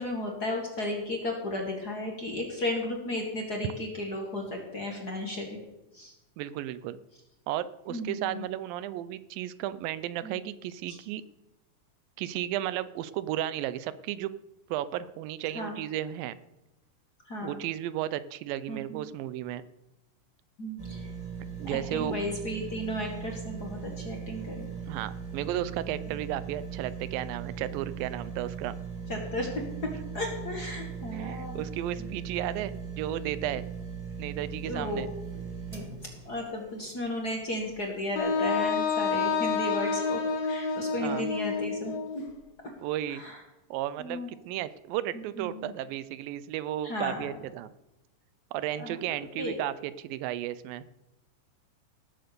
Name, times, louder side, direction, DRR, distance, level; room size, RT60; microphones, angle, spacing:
voice 1, 0.0-5.6 5.9-6.1 7.9-8.4 10.2-10.4 10.9-11.0 15.5-15.8 17.3-17.5 18.7-19.0 20.6-21.1 21.6-24.7 29.1-29.5 30.1-31.6 32.0-32.1 34.6-35.0 35.4-35.8 36.2-41.9 43.1-43.4 44.0-44.3 45.1-45.7 46.8-47.3 48.8-49.0 49.4-49.5, left 1 dB, 40° left, 1 dB, 1.7 m, -34 dB
voice 2, 6.4-7.0 7.5-11.2 12.2-14.3 14.7-16.4 17.4-19.6 21.6-22.2 24.9-28.8 31.1-33.7 34.2-35.1 41.0-41.3 42.8-43.2 43.7-47.7 48.5-50.9, right 12 dB, 85° right, 15 dB, 2.4 m, -34 dB
sound 1, 20.8-38.0 38.5-38.6, right 6 dB, 35° right, 0.5 m, -39 dB
Wind instrument woodwind instrument, 38.2-42.2, left 5 dB, 90° left, 3.2 m, -29 dB
17.5 x 7.8 x 6.8 m, 0.98 s
omnidirectional pair, 4.0 m